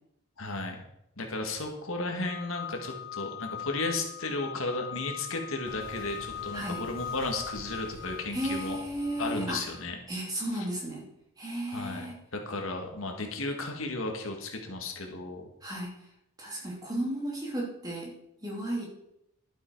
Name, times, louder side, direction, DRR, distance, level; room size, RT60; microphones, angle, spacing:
voice 1, 0.4-0.8 1.2-8.8 9.2-10.0 10.5-10.7 11.7-15.5, left 2 dB, 70° left, 3 dB, 1.8 m, -34 dB
sound 1, 2.2-10.0, left 9 dB, 50° left, 0.5 m, -41 dB
Boom, 5.6-10.9, equal, 60° right, 3.7 m, -49 dB
voice 2, 6.5-6.8 8.3-9.6 10.1-11.1 11.4-12.2 15.6-15.9 16.4-18.9, right 1 dB, 15° right, -3 dB, 2.8 m, -34 dB
11.5 x 8.0 x 4.6 m, 0.79 s
head